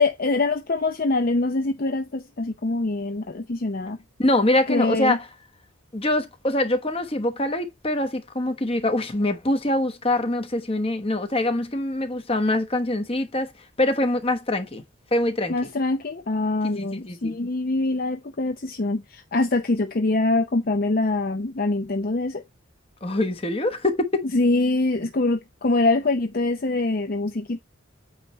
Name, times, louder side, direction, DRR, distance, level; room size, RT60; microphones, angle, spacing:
voice 1, 0.0-4.0 4.7-5.2 15.5-22.4 24.3-27.6, left 2 dB, 45° left, 0.6 m, -24 dB
voice 2, 4.2-5.2 5.9-13.5 13.8-14.8 15.1-15.5 16.7-17.3 23.0-24.3, left 1 dB, 30° left, 1.1 m, -24 dB
8.8 x 3.1 x 5.5 m
head